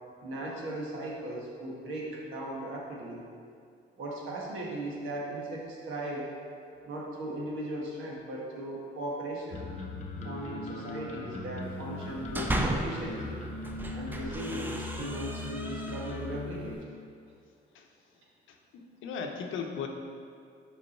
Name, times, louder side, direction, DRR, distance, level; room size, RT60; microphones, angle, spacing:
voice 1, 0.2-3.2 4.0-6.3 6.8-9.6 10.2-13.4 13.9-16.8, right 1 dB, 80° right, -3 dB, 1.4 m, -37 dB
sound 1, 9.5-16.7, left 2 dB, 35° left, 0.8 m, -39 dB
sound 2, 12.0-13.1 13.6-16.4, right 1 dB, 10° right, 0.5 m, -35 dB
voice 2, 18.5-19.9, left 6 dB, 80° left, 3 dB, 0.7 m, -37 dB
5.3 x 4.8 x 4.2 m, 2.3 s
cardioid pair, 90°, 20 cm